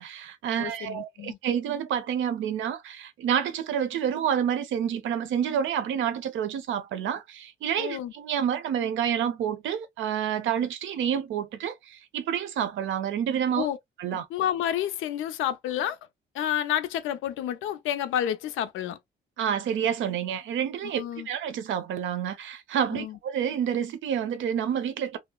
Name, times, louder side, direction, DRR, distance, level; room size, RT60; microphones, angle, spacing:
voice 1, 0.0-13.7 14.0-14.3 19.4-25.2, right 8 dB, 75° right, 0.6 m, -28 dB
voice 2, 0.6-1.4 7.8-8.1 13.6-13.8 14.1-16.0 16.3-19.0 20.8-21.3 22.9-23.2, left 11 dB, 85° left, 0.5 m, -30 dB
2.8 x 2.0 x 2.2 m
cardioid pair, 90°, 20 cm